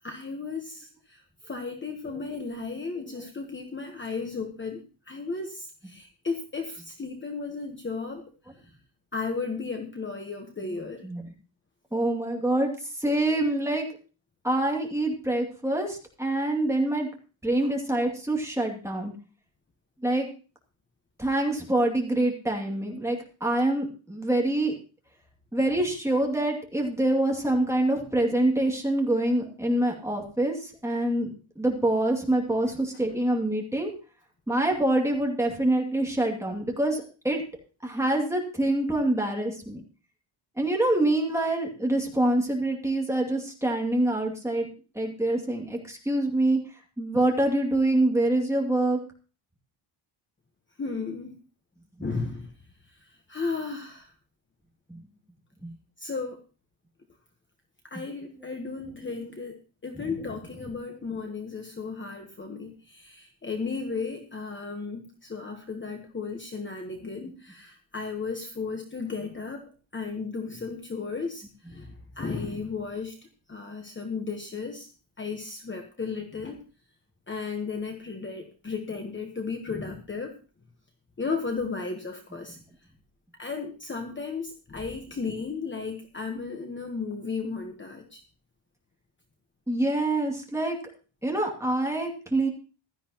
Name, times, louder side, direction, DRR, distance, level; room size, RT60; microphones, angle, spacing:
voice 1, 0.0-8.7 9.1-11.1 17.6-17.7 32.6-32.7 50.8-51.4 52.0-52.5 52.8-54.1 56.0-56.4 57.8-69.6 69.9-73.2 73.5-74.9 75.2-76.6 77.3-80.4 81.2-82.6 83.4-88.2, left 4 dB, 25° left, 4 dB, 1.2 m, -34 dB
voice 2, 11.9-12.7 13.0-13.9 14.4-17.1 17.4-19.1 20.0-20.3 21.2-24.7 25.5-33.9 34.5-37.4 37.8-39.8 40.6-44.7 44.9-46.6 47.0-49.0 52.0-52.1 54.9-55.0 55.6-55.7 59.9-60.1 89.7-90.7 91.2-92.5, right 1 dB, 5° right, 0 dB, 2.5 m, -25 dB
16.0 x 12.5 x 3.0 m, 0.35 s
wide cardioid pair, 180°, 49 cm